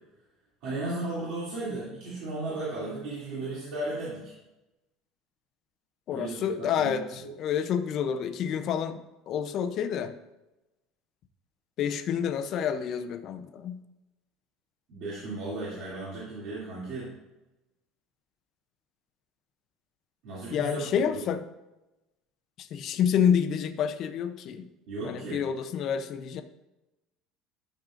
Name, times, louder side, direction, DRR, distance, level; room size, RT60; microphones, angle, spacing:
voice 1, 0.6-4.3 6.1-6.4 6.7-7.0 14.9-17.1 20.2-21.2 24.9-25.4, right 2 dB, 55° right, -8 dB, 2.6 m, -35 dB
voice 2, 6.1-10.1 11.8-13.8 20.5-21.4 22.6-24.7 25.0-26.4, left 8 dB, 40° left, 8 dB, 0.5 m, -28 dB
11.5 x 6.4 x 2.5 m, 0.97 s
cardioid pair, 170°, 0 cm